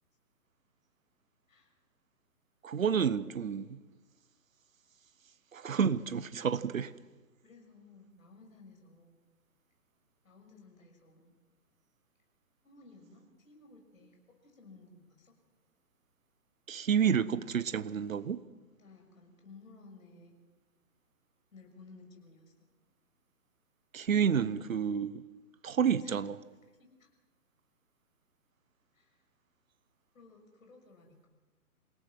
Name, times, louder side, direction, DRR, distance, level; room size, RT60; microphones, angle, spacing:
voice 1, 1.5-1.8 7.4-9.2 10.2-11.3 12.6-14.2 14.4-15.4 18.8-20.3 21.5-22.5 25.7-26.2 26.7-27.1 28.9-29.2 30.1-31.3, left 3 dB, 60° left, 6.7 m, -57 dB
voice 2, 2.6-3.8 5.5-6.9 16.7-18.4 23.9-25.2 25.6-26.4, right 7 dB, 60° right, 1.0 m, -29 dB
27.5 x 17.5 x 6.1 m
figure-of-eight pair, 135°, 46 cm